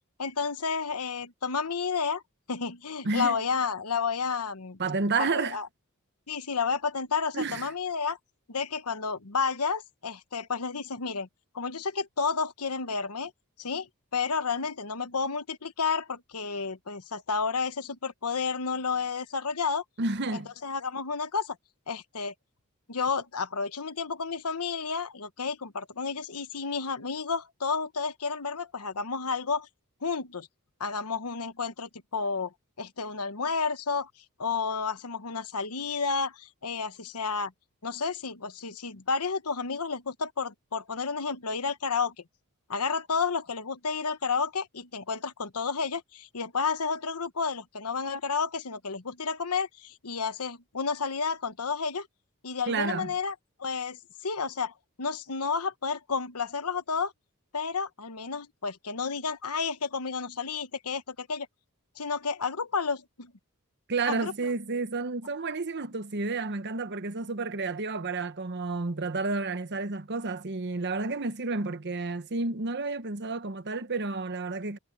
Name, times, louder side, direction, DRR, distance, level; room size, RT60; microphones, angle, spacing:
voice 1, 0.2-2.2 2.5-4.8 5.1-5.7 6.3-8.2 8.5-11.3 11.5-13.3 13.6-19.8 20.3-21.6 21.9-22.3 22.9-29.7 30.0-30.5 30.8-34.1 34.4-37.5 37.8-42.1 42.7-52.1 52.4-57.1 57.5-61.5 62.0-63.3 64.1-64.3, left 5 dB, 90° left, 1.2 m, -31 dB
voice 2, 3.0-3.4 4.8-5.6 7.3-7.7 20.0-20.5 52.7-53.1 63.9-74.8, right 3 dB, 50° right, 1.1 m, -30 dB
head